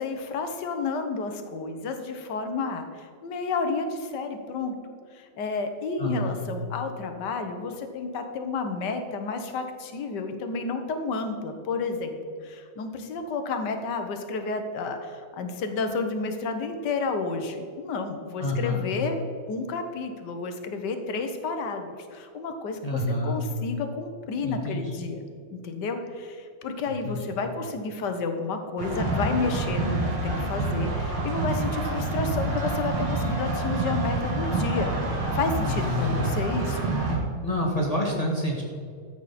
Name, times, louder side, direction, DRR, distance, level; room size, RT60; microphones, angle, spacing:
voice 1, 0.0-4.7 5.1-19.2 19.5-25.2 25.5-36.8, left 4 dB, 60° left, 7 dB, 1.6 m, -31 dB
voice 2, 6.0-6.4 18.4-18.8 22.8-23.4 24.4-24.8 26.9-27.2 35.6-36.3 37.4-38.6, left 1 dB, 20° left, -2 dB, 1.6 m, -28 dB
sound 1, 28.8-37.2, right 2 dB, 85° right, 2.8 m, -27 dB
13.5 x 8.0 x 4.2 m, 2.2 s
omnidirectional pair, 2.2 m